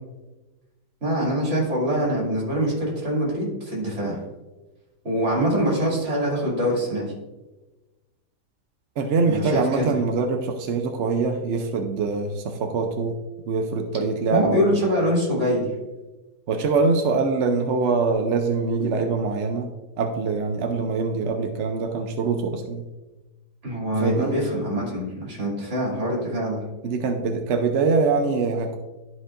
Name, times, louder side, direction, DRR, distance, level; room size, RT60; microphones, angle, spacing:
voice 1, 1.0-4.2 5.0-7.1 9.3-9.9 14.3-15.7 23.6-26.6, equal, 40° right, -4 dB, 2.9 m, -24 dB
voice 2, 9.0-13.2 13.5-14.8 16.5-19.7 20.0-22.8 24.0-24.4 26.8-28.8, right 4 dB, 65° right, 5 dB, 0.7 m, -24 dB
12.5 x 5.5 x 2.5 m, 1.1 s
omnidirectional pair, 1.8 m